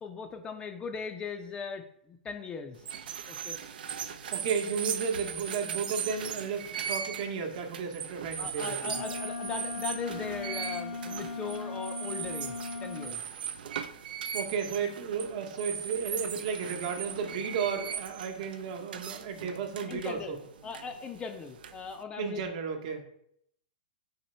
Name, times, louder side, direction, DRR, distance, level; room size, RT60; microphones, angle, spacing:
voice 1, 0.0-2.8 3.3-3.6 8.4-13.2 19.9-20.4 20.6-22.5, left 5 dB, 20° left, 6 dB, 0.4 m, -39 dB
sound 1, 2.8-22.0, right 8 dB, 75° right, 0.4 m, -39 dB
voice 2, 4.3-9.0 14.3-20.4 22.2-23.0, right 6 dB, 55° right, 3 dB, 0.9 m, -33 dB
Wind instrument woodwind instrument, 8.8-13.2, left 4 dB, 85° left, 0.7 m, -38 dB
4.2 x 2.9 x 4.2 m, 0.72 s
hypercardioid pair, 135°, 5 cm